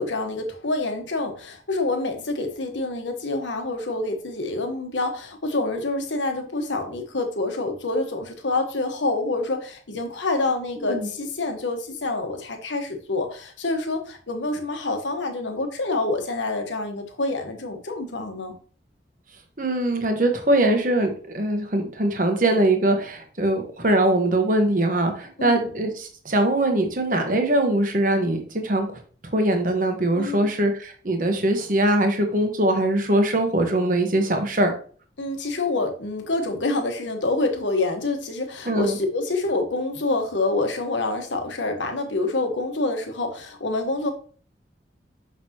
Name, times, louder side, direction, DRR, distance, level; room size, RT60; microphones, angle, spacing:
voice 1, 0.0-18.5 25.4-25.7 30.1-30.5 35.2-44.1, left 2 dB, 85° left, 5 dB, 1.2 m, -27 dB
voice 2, 10.8-11.1 19.6-28.9 29.3-34.7 38.7-39.0, right 1 dB, 45° right, 5 dB, 1.1 m, -22 dB
6.3 x 6.0 x 2.9 m, 0.42 s
head